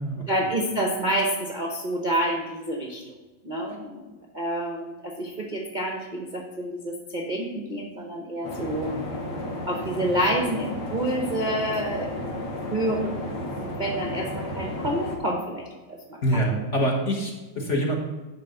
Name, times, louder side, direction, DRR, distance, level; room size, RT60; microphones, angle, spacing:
voice 1, 0.3-3.0 3.4-4.1 4.3-8.9 9.7-12.1 12.7-16.6, right 1 dB, 35° right, 0 dB, 0.7 m, -28 dB
sound 1, 8.4-15.2, left 1 dB, 60° left, 2.2 m, -33 dB
voice 2, 16.2-17.9, right 1 dB, 40° left, -1 dB, 1.4 m, -25 dB
10.5 x 3.6 x 6.6 m, 1.2 s
omnidirectional pair, 2.2 m